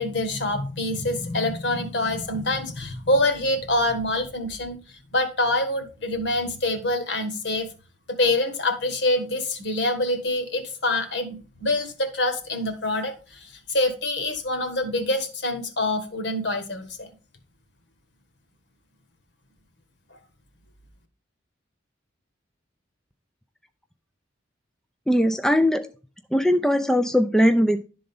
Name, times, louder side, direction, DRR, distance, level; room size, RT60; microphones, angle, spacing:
voice 1, 0.0-4.8 5.1-7.7 8.2-17.1, left 2 dB, 65° left, 8 dB, 1.5 m, -25 dB
voice 2, 25.1-25.9 26.3-27.8, equal, 5° left, 7 dB, 0.4 m, -20 dB
11.5 x 3.9 x 5.4 m, 0.35 s
head